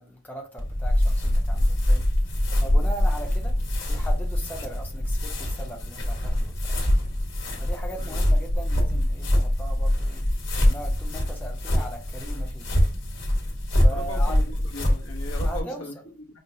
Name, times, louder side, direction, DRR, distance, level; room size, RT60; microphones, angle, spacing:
voice 1, 0.0-2.1 2.6-3.6 3.9-7.1 7.6-10.2 10.6-12.9 13.7-14.4 15.4-15.8, equal, 10° left, 0.6 m, -39 dB
sound 1, 0.6-15.6, left 1 dB, 60° left, 1.3 m, -24 dB
voice 2, 13.9-16.4, left 1 dB, 85° left, 0.9 m, -39 dB
5.4 x 2.1 x 2.7 m
head